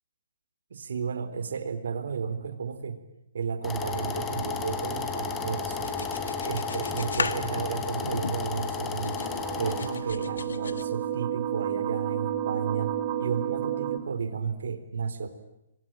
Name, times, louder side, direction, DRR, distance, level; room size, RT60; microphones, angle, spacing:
voice 1, 0.7-3.0 3.3-5.9 6.5-9.2 9.6-15.3, right 6 dB, 75° right, 11 dB, 4.0 m, -33 dB
sound 1, 3.6-10.0, left 5 dB, 15° left, 3.3 m, -33 dB
sound 2, 5.8-8.7 9.0-10.8, left 5 dB, 90° left, 1.5 m, -36 dB
sound 3, 8.7-14.0, right 10 dB, 35° right, 3.7 m, -31 dB
27.5 x 24.0 x 9.0 m, 0.88 s
hypercardioid pair, 150°, 0 cm